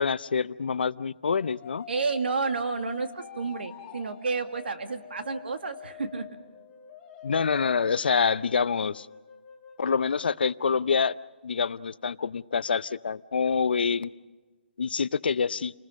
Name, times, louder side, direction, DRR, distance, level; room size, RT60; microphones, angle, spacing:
voice 1, 0.0-1.9 7.2-9.1 9.8-11.2 11.4-14.1 14.8-15.7, left 5 dB, 65° left, 16 dB, 0.7 m, -26 dB
sound 1, 1.2-11.2, left 9 dB, 10° left, 1.0 m, -47 dB
voice 2, 1.9-6.3, right 4 dB, 75° right, 7 dB, 2.2 m, -30 dB
29.0 x 20.0 x 6.4 m, 1.2 s
hypercardioid pair, 175°, 6 cm